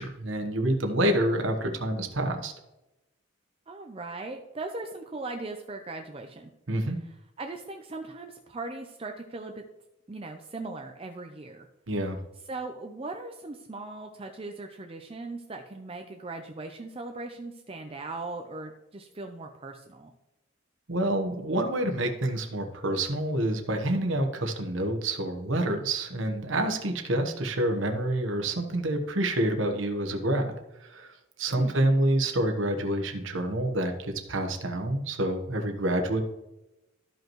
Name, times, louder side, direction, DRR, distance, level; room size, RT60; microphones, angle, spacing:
voice 1, 0.0-2.5 6.7-7.0 11.9-12.2 20.9-30.5 30.8-36.2, right 1 dB, 65° right, 5 dB, 1.1 m, -27 dB
voice 2, 3.7-6.5 7.0-9.6 10.1-11.7 12.5-20.1 31.6-31.9, right 2 dB, 25° right, 4 dB, 0.5 m, -39 dB
13.5 x 5.3 x 3.0 m, 0.96 s
head